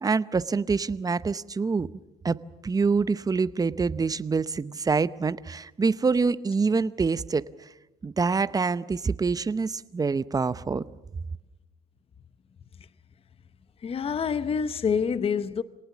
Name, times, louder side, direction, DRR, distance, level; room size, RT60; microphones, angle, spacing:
voice 1, 0.0-1.9 2.2-2.4 2.6-7.4 8.0-10.8, right 4 dB, 20° right, 0.7 m, -26 dB
voice 2, 13.8-15.6, left 6 dB, 35° left, 0.8 m, -27 dB
26.5 x 19.0 x 7.3 m
cardioid pair, 110°, 17 cm